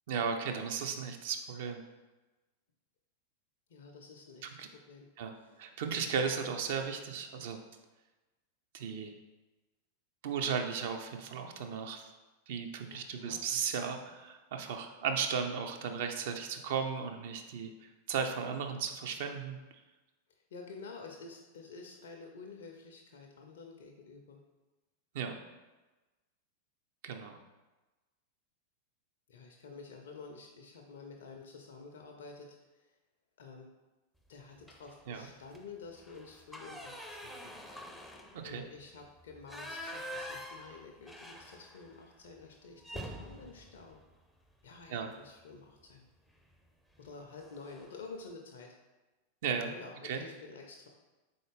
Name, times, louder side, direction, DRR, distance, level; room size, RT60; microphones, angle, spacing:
voice 1, 0.1-1.8 4.4-4.7 5.2-7.6 8.7-9.1 10.2-12.1 12.5-19.6 25.1-25.4 27.0-27.4 35.1-35.3 38.3-38.6 44.9-45.1 49.4-49.7 50.0-50.2, right 6 dB, 55° right, 5 dB, 0.4 m, -35 dB
voice 2, 3.7-5.1 12.9-13.4 20.3-24.4 29.3-32.9 33.4-33.7 34.3-37.5 38.4-44.0 44.6-46.1 47.0-48.7 49.6-50.9, left 4 dB, 60° left, 2 dB, 0.4 m, -50 dB
sound 1, 34.6-35.1 35.4-35.6 36.0-42.0 42.3-42.4 42.8-45.0 46.3-46.6 46.9-47.1 47.4-48.0, equal, 5° left, 0.4 m, -46 dB
3.9 x 3.8 x 3.4 m, 1.2 s
figure-of-eight pair, 90°, 0 cm